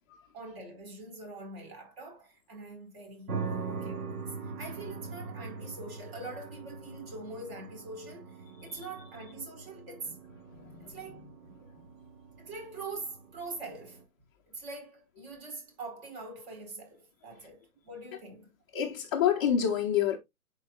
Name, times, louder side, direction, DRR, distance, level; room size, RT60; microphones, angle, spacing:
voice 1, 0.3-3.4 3.7-10.2 10.8-11.3 12.4-14.1 14.5-18.5, right 3 dB, 40° right, 4.5 m, -43 dB
sound 1, 3.3-14.0, right 4 dB, 75° right, 1.8 m, -42 dB
voice 2, 10.5-11.0 11.7-12.0 18.7-20.2, left 9 dB, 15° left, 0.5 m, -29 dB
10.5 x 4.4 x 2.3 m
hypercardioid pair, 145°, 45 cm